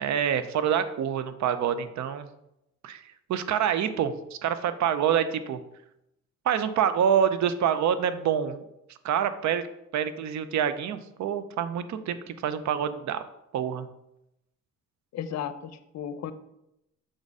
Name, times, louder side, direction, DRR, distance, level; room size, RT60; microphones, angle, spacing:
voice 1, 0.0-2.3 2.8-3.0 3.3-5.6 6.5-8.6 9.0-9.7 9.9-13.2 13.5-13.9, right 8 dB, 70° right, 12 dB, 0.6 m, -26 dB
voice 2, 15.1-16.3, left 9 dB, 60° left, 11 dB, 0.6 m, -34 dB
6.3 x 4.1 x 4.8 m, 0.85 s
cardioid pair, 90°, 30 cm